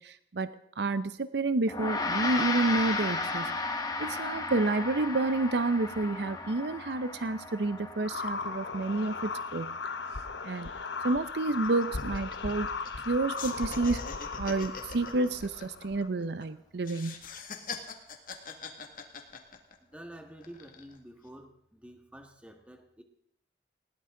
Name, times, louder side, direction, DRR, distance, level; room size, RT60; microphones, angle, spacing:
voice 1, 0.0-3.6 4.0-9.8 10.4-10.7 11.0-12.7 13.1-14.1 14.4-17.1, right 2 dB, 65° right, 13 dB, 0.6 m, -29 dB
Gong, 1.7-11.2, left 3 dB, 20° left, 1.3 m, -35 dB
sound 1, 8.0-16.1, left 4 dB, 80° left, 1.0 m, -37 dB
sound 2, 10.6-10.7 10.9-11.1 11.5-13.1 13.3-16.4 16.8-19.9 20.4-21.0, left 5 dB, 50° left, 2.0 m, -43 dB
voice 2, 19.8-23.0, right 1 dB, 5° right, 4 dB, 1.7 m, -49 dB
20.0 x 17.5 x 3.8 m, 0.70 s
head